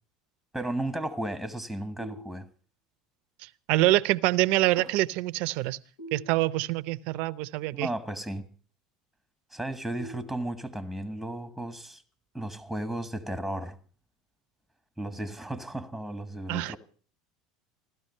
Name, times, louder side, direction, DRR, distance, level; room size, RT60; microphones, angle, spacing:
voice 1, 0.5-2.5 7.7-8.5 9.5-12.0 12.3-13.8 15.0-16.8, right 1 dB, ahead, 1.4 m, -34 dB
sound 1, 2.0-2.9 6.0-7.0 10.0-11.0, equal, 80° left, 4.9 m, -47 dB
voice 2, 3.4-5.8 6.1-7.9 16.5-16.8, right 18 dB, 65° right, 0.6 m, -26 dB
sound 2, 4.7-6.6 6.9-7.0 7.5-7.7 8.1-8.2 8.5-8.6 9.3-9.6, left 4 dB, 25° left, 6.7 m, -53 dB
16.0 x 12.5 x 5.5 m
hypercardioid pair, 90°, 3 cm